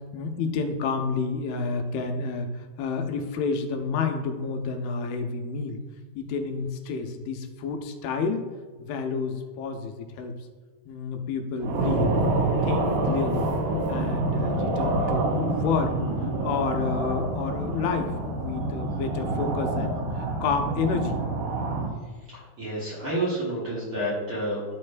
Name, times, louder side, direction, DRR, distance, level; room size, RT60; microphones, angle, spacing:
voice 1, 0.1-2.5 2.8-5.8 6.2-8.4 8.8-10.3 10.9-12.1 12.6-13.5 13.9-20.0 20.4-21.2, left 5 dB, 85° left, 5 dB, 2.5 m, -29 dB
sound 1, 11.6-21.9, right 2 dB, 75° right, 2.1 m, -27 dB
voice 2, 22.3-24.6, right 1 dB, 55° right, -8 dB, 1.6 m, -29 dB
11.5 x 4.3 x 2.5 m, 1.4 s
omnidirectional pair, 4.3 m